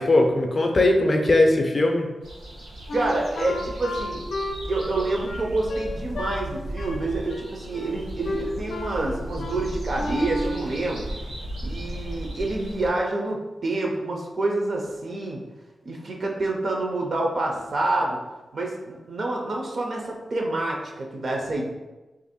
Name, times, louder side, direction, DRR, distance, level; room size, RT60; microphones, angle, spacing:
voice 1, 0.0-2.1, left 2 dB, 30° left, 2 dB, 0.5 m, -19 dB
sound 1, 2.2-12.9, right 1 dB, 90° right, 1.3 m, -35 dB
Wind instrument woodwind instrument, 2.9-6.4 6.8-7.0 7.3-8.0 8.2-9.0 9.4-9.6 9.9-10.7, left 1 dB, 85° left, 0.5 m, -32 dB
voice 2, 2.9-4.2 4.7-11.1 11.6-15.4 15.8-18.2 18.5-21.7, right 2 dB, 50° right, 0 dB, 0.5 m, -27 dB
2.8 x 2.5 x 4.1 m, 1.1 s
wide cardioid pair, 150°, 0 cm